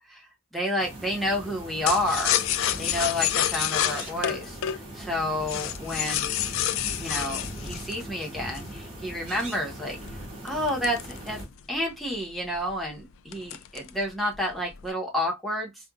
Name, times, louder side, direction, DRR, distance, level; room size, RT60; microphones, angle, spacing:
voice 1, 0.1-2.3 2.8-4.6 4.9-6.3 7.0-10.0 10.4-11.4 11.7-15.7, left 1 dB, ahead, 1.2 m, -30 dB
sound 1, 0.8-11.4, right 1 dB, 30° right, 2.6 m, -40 dB
sound 2, 1.9-8.8 9.3-11.8 12.1-12.2 12.5-12.9 13.3-14.0 14.3-14.9, left 11 dB, 60° left, 0.4 m, -29 dB
4.5 x 2.5 x 2.3 m
head